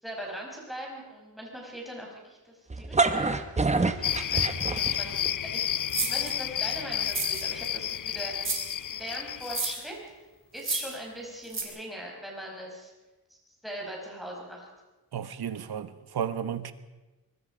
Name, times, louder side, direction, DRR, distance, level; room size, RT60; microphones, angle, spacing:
voice 1, 0.0-4.4 4.8-5.7 6.0-8.5 8.9-10.0 10.5-12.9 13.3-13.4 13.6-14.7, right 1 dB, ahead, -2 dB, 5.3 m, -41 dB
sound 1, 2.7-5.3, right 3 dB, 20° right, 1.0 m, -26 dB
sound 2, 4.0-9.7, left 10 dB, 55° left, 0.6 m, -31 dB
sound 3, 5.9-6.3 7.0-7.7 8.4-8.7 9.4-9.9 10.6-11.0 11.5-11.6, right 4 dB, 35° right, 3.6 m, -31 dB
voice 2, 15.1-16.7, right 8 dB, 85° right, 11 dB, 1.3 m, -33 dB
24.0 x 22.0 x 5.1 m, 1.2 s
wide cardioid pair, 180°, 37 cm